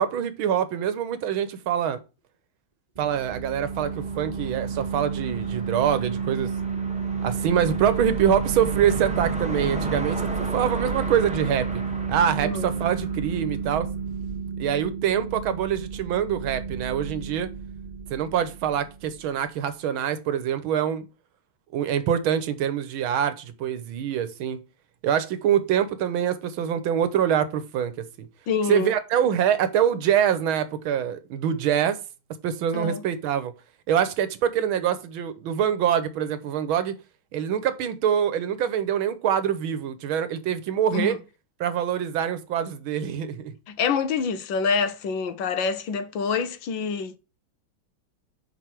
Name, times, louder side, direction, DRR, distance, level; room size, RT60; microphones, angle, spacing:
voice 1, 0.0-2.0 3.0-6.5 7.2-11.8 12.1-13.9 14.6-17.5 18.1-21.0 21.7-24.6 25.0-27.9 28.2-28.3 28.7-32.0 32.4-33.5 33.9-36.9 37.3-41.2 41.6-43.5, right 9 dB, 85° right, 1.7 m, -25 dB
sound 1, 3.0-19.2, right 5 dB, 25° right, 1.2 m, -31 dB
sound 2, 3.6-13.9, right 1 dB, 5° right, 0.7 m, -38 dB
voice 2, 28.5-28.9 32.7-33.0 40.9-41.2 43.7-47.2, left 5 dB, 75° left, 1.5 m, -26 dB
6.2 x 5.1 x 4.5 m
omnidirectional pair, 2.2 m